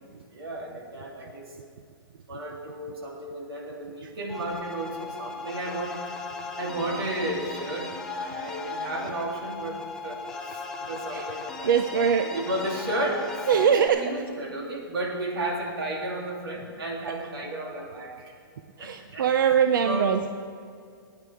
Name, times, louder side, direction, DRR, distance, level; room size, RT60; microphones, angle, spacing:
voice 1, 0.3-1.5 2.3-6.0 6.6-9.8 10.0-10.2 10.5-18.3 18.8-19.3 19.8-20.1, right 1 dB, 90° right, -1 dB, 2.9 m, -33 dB
sound 1, 4.3-13.9, left 4 dB, 5° left, 0.5 m, -37 dB
voice 2, 11.6-12.3 13.5-14.1 18.8-20.3, right 7 dB, 60° right, 8 dB, 0.6 m, -22 dB
18.5 x 9.6 x 3.5 m, 2.3 s
hypercardioid pair, 170°, 12 cm